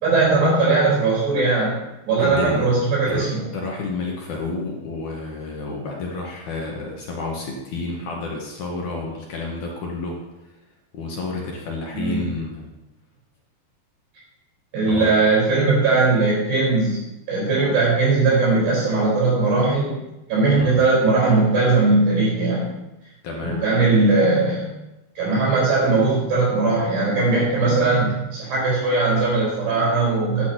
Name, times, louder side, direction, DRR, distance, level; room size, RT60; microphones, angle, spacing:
voice 1, 0.0-1.8 2.1-3.5 11.9-12.2 14.7-17.0 17.3-20.0 20.3-22.7 23.4-24.7 25.2-30.5, right 3 dB, 65° right, -5 dB, 6.6 m, -19 dB
voice 2, 2.2-2.7 3.1-10.2 10.9-12.7 14.9-15.2 20.6-20.8 23.2-23.6, left 3 dB, 65° left, -2 dB, 2.0 m, -30 dB
14.5 x 10.5 x 3.0 m, 0.96 s
omnidirectional pair, 5.2 m